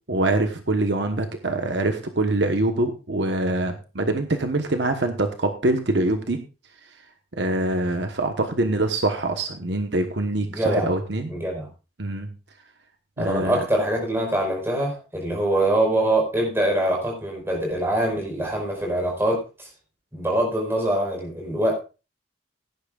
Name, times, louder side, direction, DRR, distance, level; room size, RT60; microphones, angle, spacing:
voice 1, 0.1-6.4 7.3-11.3 12.0-12.3 13.2-13.6, right 2 dB, 65° right, 6 dB, 1.2 m, -24 dB
voice 2, 10.5-10.9 11.3-11.7 13.2-19.7 20.1-21.8, right 1 dB, 15° right, 0 dB, 4.9 m, -24 dB
17.0 x 10.5 x 2.4 m, 0.31 s
head